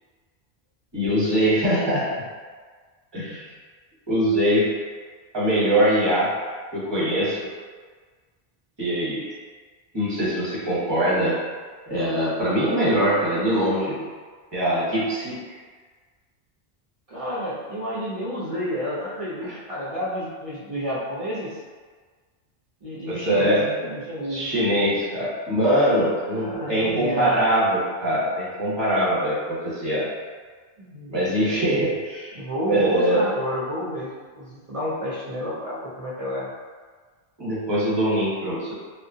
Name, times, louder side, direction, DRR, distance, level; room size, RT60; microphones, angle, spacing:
voice 1, 0.9-2.3 3.1-3.5 4.1-4.7 5.3-6.3 6.7-7.5 8.8-9.3 9.9-11.4 11.9-14.1 14.5-15.5 19.4-19.5 23.1-23.6 24.3-30.1 31.1-32.3 32.7-33.2 37.4-38.7, right 1 dB, 25° right, -8 dB, 0.8 m, -22 dB
voice 2, 17.1-21.6 22.8-24.5 26.3-27.4 30.8-31.2 32.3-36.5, equal, 45° right, -8 dB, 0.5 m, -30 dB
2.7 x 2.1 x 2.6 m, 1.5 s
omnidirectional pair, 1.1 m